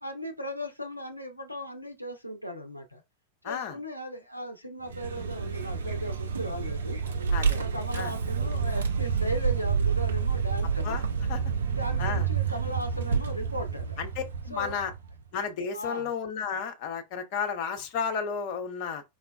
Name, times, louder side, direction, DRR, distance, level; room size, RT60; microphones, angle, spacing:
voice 1, 0.0-3.0 3.4-7.0 7.5-11.0 11.6-13.9 14.5-14.8 15.7-16.1, equal, 90° left, 0.4 m, -37 dB
voice 2, 3.4-3.8 7.3-7.6 7.9-8.1 10.8-11.0 11.3-11.4 12.0-12.3 14.0-14.9 15.3-19.0, left 6 dB, 45° left, 0.6 m, -32 dB
Vehicle, 4.8-15.2, right 6 dB, 70° right, 0.5 m, -29 dB
4.6 x 2.2 x 2.2 m
figure-of-eight pair, 90°, 0 cm